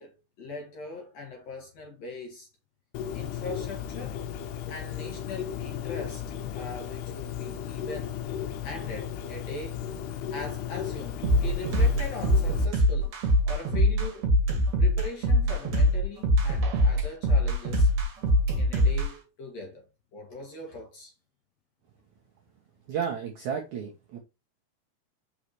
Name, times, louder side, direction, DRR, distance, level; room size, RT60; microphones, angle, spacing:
voice 1, 0.0-2.5 3.1-4.2 4.7-6.2 6.6-8.2 8.6-9.8 10.3-13.1 13.4-14.3 14.8-17.9 18.6-19.8 20.1-21.1, left 2 dB, 55° left, 2.2 m, -40 dB
Bird, 2.9-12.7, left 9 dB, 85° left, 2.8 m, -35 dB
sound 1, 11.2-19.1, equal, 50° right, 2.8 m, -23 dB
voice 2, 22.9-24.2, right 7 dB, 70° right, 1.8 m, -32 dB
6.3 x 5.6 x 2.9 m
omnidirectional pair, 4.7 m